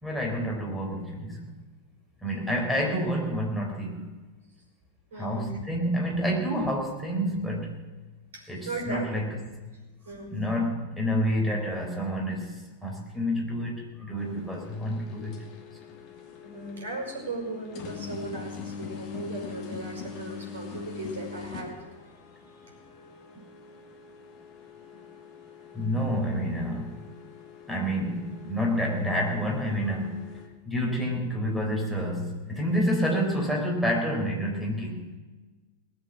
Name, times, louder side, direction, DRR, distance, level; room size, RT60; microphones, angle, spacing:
voice 1, 0.0-1.5 2.2-4.1 5.1-7.8 8.5-9.4 10.3-15.4 25.7-27.0 27.7-30.3 30.7-35.0, equal, ahead, -1 dB, 4.1 m, -28 dB
voice 2, 5.1-5.5 8.3-9.1 10.1-10.3 16.4-21.7, right 2 dB, 65° right, 2 dB, 5.4 m, -37 dB
sound 1, 14.2-30.5, left 6 dB, 35° left, 2.0 m, -43 dB
19.5 x 8.1 x 7.3 m, 1.3 s
figure-of-eight pair, 90°, 0 cm